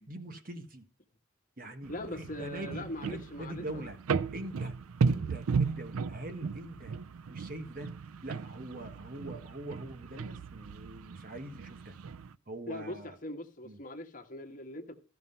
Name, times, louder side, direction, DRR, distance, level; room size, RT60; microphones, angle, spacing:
voice 1, 0.1-0.9 1.6-4.7 5.1-6.9 7.3-7.9 8.2-11.9 12.5-13.2 13.6-13.8, right 1 dB, 40° right, 1.5 m, -43 dB
sound 1, 1.8-12.4, right 5 dB, 85° right, 0.4 m, -35 dB
voice 2, 1.9-3.9 12.7-15.0, left 1 dB, 40° left, 1.4 m, -41 dB
14.0 x 5.9 x 5.6 m
head